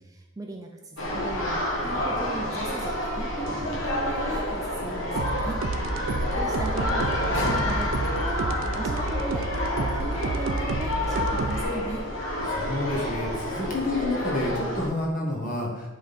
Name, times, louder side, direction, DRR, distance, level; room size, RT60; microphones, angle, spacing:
voice 1, 0.0-5.6 6.0-12.1, right 2 dB, 15° right, 2 dB, 0.5 m, -37 dB
sound 1, 1.0-14.9, left 1 dB, 75° left, 1.5 m, -29 dB
sound 2, 5.2-11.6, right 2 dB, 80° right, 0.5 m, -30 dB
voice 2, 12.5-15.9, left 2 dB, 40° left, -2 dB, 1.6 m, -29 dB
10.0 x 3.7 x 4.2 m, 1.1 s
head